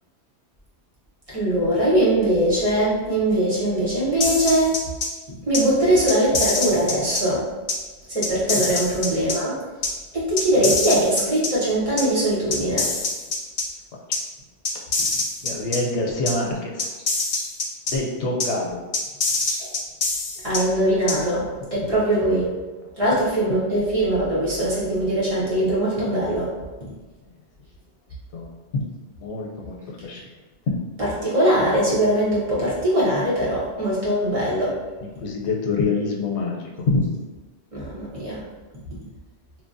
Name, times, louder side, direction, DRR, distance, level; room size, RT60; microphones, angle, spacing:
voice 1, 1.3-4.7 5.5-7.5 8.1-9.5 10.1-12.9 17.3-17.4 19.4-19.7 20.4-22.5 23.0-26.5 31.0-34.8 37.7-38.4, right 1 dB, 35° right, -8 dB, 0.8 m, -21 dB
sound 1, 4.2-5.1 5.5-5.6 6.1-7.2 7.7-7.8 8.2-9.3 9.8-9.9 10.4-11.5 12.0-12.1 12.5-13.6 14.1-14.2 14.6-15.8 16.3-16.4 16.8-17.9 18.4-18.5 18.9-20.6 21.1-21.2, left 3 dB, 60° left, 0.8 m, -24 dB
voice 2, 15.4-16.9 17.9-18.8 28.3-28.5 29.2-29.7 30.0-30.2 35.2-36.5 36.9-37.1, left 3 dB, 90° left, -1 dB, 0.9 m, -25 dB
3.1 x 2.2 x 2.5 m, 1.2 s
omnidirectional pair, 1.1 m